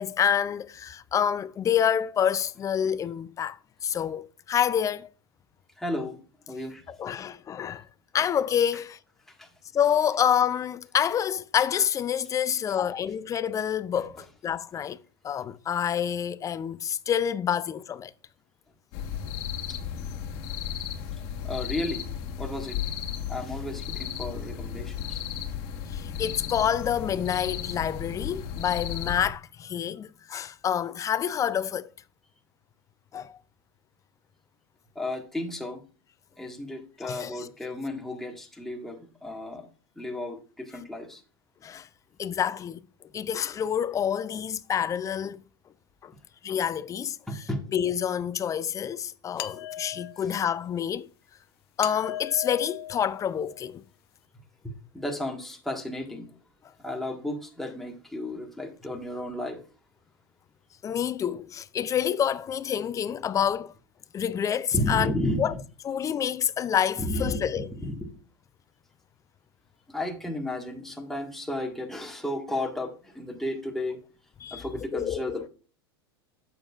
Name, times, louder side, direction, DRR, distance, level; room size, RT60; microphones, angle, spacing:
voice 1, 0.0-5.1 6.9-7.9 8.1-9.0 9.7-15.0 15.2-18.1 25.5-25.6 25.8-31.9 33.1-33.3 37.0-37.5 41.6-41.9 42.2-42.8 43.1-45.4 46.0-46.1 46.4-47.4 47.7-51.1 51.8-53.8 60.8-63.7 64.1-65.1 65.4-65.5 65.8-67.7 74.4-75.5, left 9 dB, 25° left, 0.4 m, -28 dB
voice 2, 5.8-6.2 6.5-6.8 9.4-9.5 19.7-19.8 21.4-22.0 22.4-22.8 23.3-25.2 34.9-35.8 36.4-39.7 40.0-41.2 47.3-47.6 54.6-56.3 56.8-59.6 64.7-65.6 67.0-68.2 69.9-74.0 74.5-75.5, left 1 dB, ahead, 1.7 m, -33 dB
sound 1, 18.9-29.3, left 8 dB, 55° left, 1.3 m, -34 dB
sound 2, 49.4-50.5 51.8-53.7, left 12 dB, 70° left, 0.6 m, -38 dB
8.7 x 7.2 x 2.4 m
hypercardioid pair, 100°, 13 cm